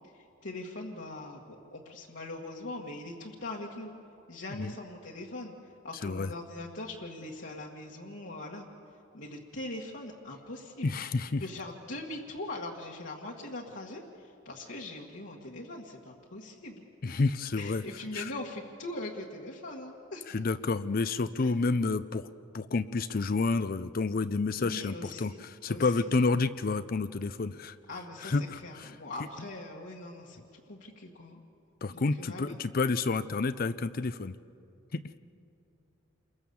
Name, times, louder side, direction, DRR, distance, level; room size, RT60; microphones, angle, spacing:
voice 1, 0.4-3.9 4.3-5.5 5.8-8.7 9.1-10.9 11.4-17.2 17.6-20.3 21.4-21.5 24.6-25.4 25.7-26.1 27.9-31.4 31.9-32.4, left 2 dB, 70° left, -3 dB, 1.8 m, -41 dB
voice 2, 6.0-6.3 10.8-11.4 17.0-17.8 18.1-18.3 20.3-22.3 22.5-27.8 28.2-28.9 31.8-34.4 34.9-35.0, left 3 dB, 45° left, 12 dB, 0.5 m, -29 dB
28.5 x 22.5 x 7.1 m, 2.7 s
head